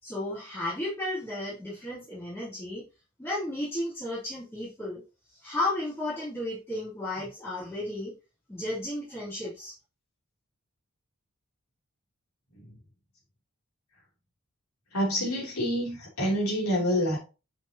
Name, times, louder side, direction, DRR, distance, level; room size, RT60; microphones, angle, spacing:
voice 1, 0.0-2.8 3.2-5.0 5.4-8.1 8.5-9.8, left 1 dB, 10° left, -11 dB, 3.4 m, -33 dB
voice 2, 14.9-17.2, equal, 80° left, -2 dB, 3.1 m, -27 dB
8.5 x 5.1 x 2.9 m, 0.31 s
head